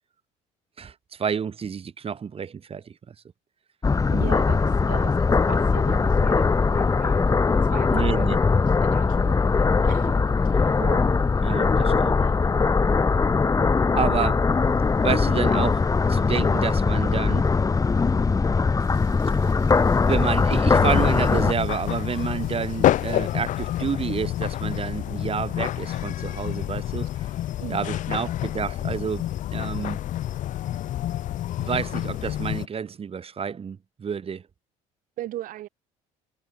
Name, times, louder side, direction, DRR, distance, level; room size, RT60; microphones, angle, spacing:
voice 1, 0.8-3.1 7.9-8.4 10.8-11.1 11.4-12.2 14.0-14.4 15.0-15.8 16.1-17.5 20.1-27.1 27.7-29.2 29.5-30.0 31.6-34.4, right 6 dB, 40° right, 3.7 m, -29 dB
sound 1, 3.8-21.5, left 4 dB, 20° left, 1.0 m, -21 dB
voice 2, 4.1-7.3 7.6-8.4 8.7-10.7 11.8-12.5 27.6-28.0 35.2-35.7, right 14 dB, 60° right, 1.9 m, -39 dB
sound 2, 18.8-23.8, right 22 dB, 85° right, 6.4 m, -57 dB
sound 3, 20.7-32.7, left 13 dB, 55° left, 0.9 m, -28 dB
hypercardioid pair, 70°, 16 cm